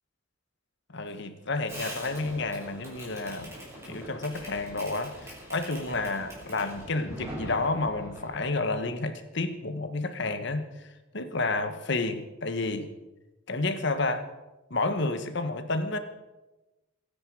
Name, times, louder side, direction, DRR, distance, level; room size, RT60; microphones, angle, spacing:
voice 1, 0.9-3.5 3.8-10.6 11.1-12.9 13.5-14.2 14.7-16.0, left 3 dB, 55° left, 9 dB, 1.4 m, -30 dB
Fireworks, 1.7-8.5, equal, 15° right, 6.2 m, -43 dB
24.0 x 10.0 x 4.9 m, 1.1 s
head